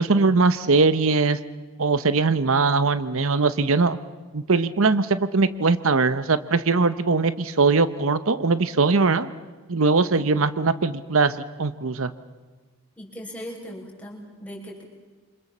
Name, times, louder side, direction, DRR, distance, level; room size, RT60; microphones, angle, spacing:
voice 1, 0.0-1.4 1.8-4.0 4.3-9.3 9.7-12.1, right 4 dB, 65° right, 13 dB, 0.8 m, -21 dB
voice 2, 13.0-14.8, equal, 5° left, -2 dB, 6.1 m, -39 dB
28.0 x 25.5 x 7.3 m, 1.3 s
head